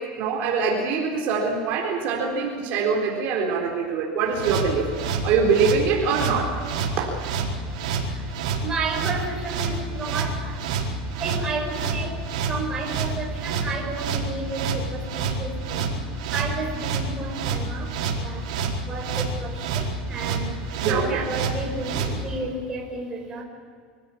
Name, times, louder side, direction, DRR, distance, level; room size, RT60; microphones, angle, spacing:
voice 1, 0.0-4.9 5.2-6.6 7.0-7.1 20.8-21.3, right 5 dB, 50° right, -1 dB, 4.0 m, -24 dB
sound 1, 4.3-22.1, right 5 dB, 85° right, 4.7 m, -28 dB
voice 2, 8.6-18.5 18.8-23.4, right 3 dB, 20° right, 0 dB, 5.6 m, -32 dB
25.5 x 16.5 x 8.7 m, 2.1 s
supercardioid pair, 150°, 4 cm